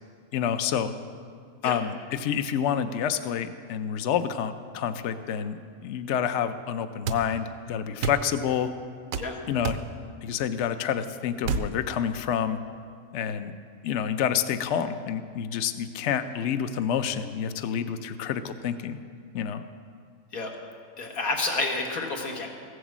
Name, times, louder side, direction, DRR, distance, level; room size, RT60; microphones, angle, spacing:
voice 1, 0.3-0.9 1.6-8.7 9.5-9.8 10.2-12.6 13.1-13.6 13.8-19.0 19.3-19.6, left 8 dB, 65° left, 10 dB, 0.9 m, -28 dB
sound 1, 7.1-7.2 8.0-8.2 9.1-9.3 9.6-9.9 11.4-11.7, right 5 dB, 75° right, 1.0 m, -28 dB
voice 2, 21.0-22.5, left 3 dB, 90° left, 1 dB, 2.1 m, -29 dB
15.5 x 8.1 x 7.3 m, 2.2 s
omnidirectional pair, 1.5 m